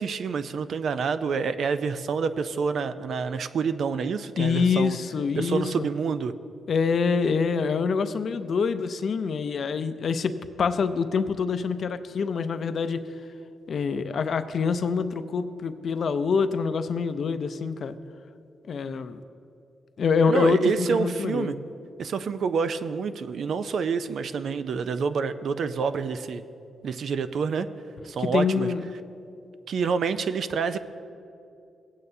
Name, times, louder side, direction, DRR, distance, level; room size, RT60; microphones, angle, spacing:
voice 1, 0.0-5.0 5.3-6.3 20.3-21.5 22.0-26.4 26.8-27.7 28.0-28.7 29.7-30.8, right 5 dB, 65° right, 11 dB, 0.4 m, -27 dB
voice 2, 4.4-5.9 6.7-13.0 13.7-18.0 18.7-19.2 20.0-21.5 28.2-28.8, left 5 dB, 60° left, 11 dB, 0.5 m, -25 dB
18.0 x 8.8 x 2.7 m, 2.6 s
cardioid pair, 85°, 0 cm